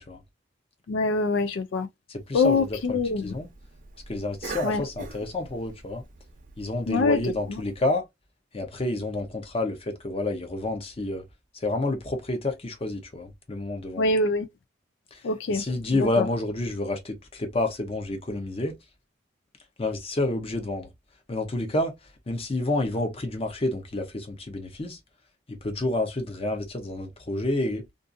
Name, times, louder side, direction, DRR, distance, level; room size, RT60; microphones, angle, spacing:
voice 1, 0.9-1.9 2.3-3.3 4.6-4.8 6.9-7.2 7.5-7.6 14.0-14.5 15.2-15.6 16.0-16.2, left 3 dB, 75° left, 0.3 m, -24 dB
voice 2, 2.1-3.5 4.1-6.0 6.6-8.0 8.5-11.3 11.5-14.1 15.1-18.8 19.8-20.9 21.3-25.0 25.5-27.9, left 2 dB, 30° left, 0.7 m, -29 dB
Cough, 2.3-7.8, right 3 dB, 45° right, 0.6 m, -44 dB
2.5 x 2.4 x 2.5 m
head